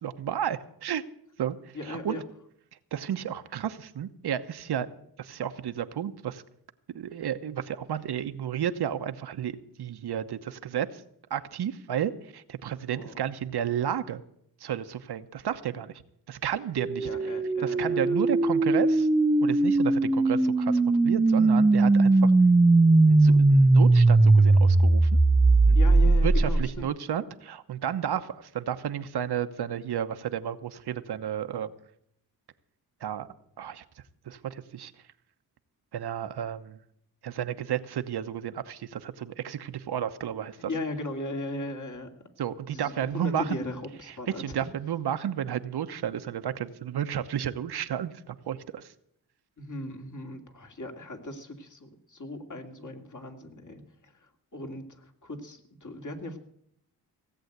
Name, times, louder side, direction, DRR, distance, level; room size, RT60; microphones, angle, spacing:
voice 1, 0.0-1.0 1.4-1.6 1.9-2.2 2.9-4.9 5.2-6.4 6.9-11.0 11.3-14.2 14.6-15.9 16.3-17.1 17.6-19.1 19.4-22.3 23.1-25.1 25.7-25.8 26.2-31.7 33.0-33.3 33.6-33.8 34.3-34.9 35.9-36.8 37.2-40.7 42.4-43.6 44.4-48.8, right 9 dB, 75° right, 10 dB, 1.0 m, -32 dB
voice 2, 1.7-2.2 12.9-13.3 17.0-18.2 25.7-26.9 40.7-42.1 42.7-44.4 49.6-54.1 54.5-56.4, left 2 dB, 50° left, 4 dB, 2.6 m, -37 dB
sound 1, 16.8-26.8, right 2 dB, 10° right, 0.5 m, -20 dB
17.5 x 8.0 x 8.0 m, 0.70 s
cardioid pair, 65°, 40 cm